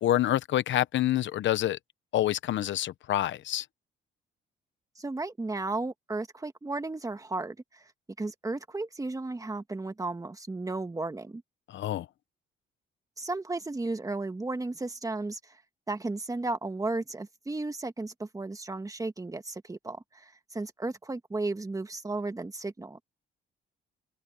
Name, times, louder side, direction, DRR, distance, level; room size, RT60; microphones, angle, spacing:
voice 1, 0.0-1.8 2.1-3.7 11.7-12.1, left 13 dB, 70° left, 0.8 m, -27 dB
voice 2, 4.9-7.9 8.2-11.4 13.2-15.6 15.9-23.0, right 2 dB, 15° right, 1.7 m, -34 dB
open air
cardioid pair, 90°, 20 cm